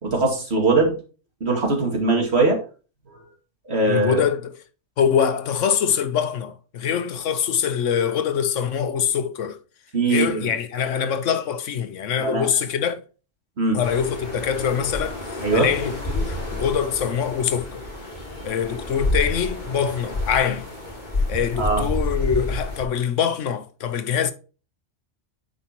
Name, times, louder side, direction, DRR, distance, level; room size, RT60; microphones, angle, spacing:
voice 1, 0.0-0.9 1.4-2.6 3.1-3.2 3.7-4.2 9.9-10.4 12.2-12.5 13.6-13.8 15.4-15.7 21.6-21.8, right 3 dB, 60° right, 2.4 m, -21 dB
voice 2, 3.8-4.6 5.0-9.6 10.1-13.0 13.7-17.9 18.4-20.7 21.3-24.3, left 8 dB, 85° left, 1.2 m, -24 dB
sound 1, 13.8-22.8, left 1 dB, 40° left, 2.5 m, -29 dB
9.8 x 5.1 x 2.9 m
omnidirectional pair, 1.2 m